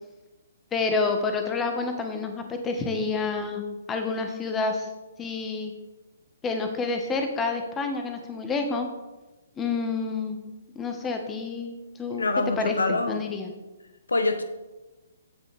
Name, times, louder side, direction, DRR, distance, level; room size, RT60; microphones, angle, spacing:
voice 1, 0.7-4.9 5.2-5.7 6.4-8.9 9.6-10.4 10.7-12.3 12.6-13.5, left 4 dB, 15° left, 5 dB, 1.3 m, -29 dB
voice 2, 12.2-13.2 14.1-14.4, left 2 dB, 80° left, 10 dB, 0.8 m, -25 dB
16.0 x 6.2 x 3.4 m, 1.1 s
figure-of-eight pair, 130°, 0 cm